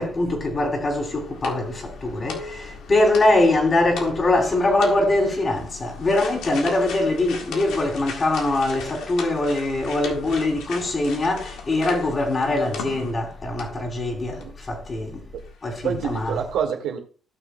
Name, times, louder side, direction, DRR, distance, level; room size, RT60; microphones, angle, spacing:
voice 1, 0.0-15.2 15.6-16.3, left 2 dB, 35° left, 3.4 m, -23 dB
sound 1, 0.8-13.3 13.6-13.8 14.4-14.5 14.8-14.9, left 5 dB, 85° left, 1.7 m, -37 dB
voice 2, 15.8-17.0, right 8 dB, 90° right, 2.1 m, -27 dB
16.0 x 6.5 x 2.3 m
cardioid pair, 90°, 0 cm